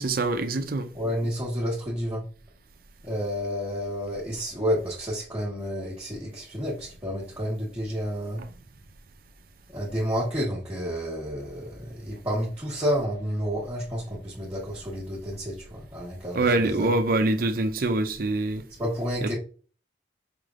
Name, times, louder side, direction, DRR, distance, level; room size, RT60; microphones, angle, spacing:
voice 1, 0.0-0.9 16.3-18.7 19.2-19.3, right 2 dB, 50° right, 0.5 m, -25 dB
voice 2, 0.9-2.2 3.0-8.4 9.7-16.9 18.8-19.3, equal, 10° right, 1.2 m, -30 dB
5.0 x 3.3 x 2.4 m
head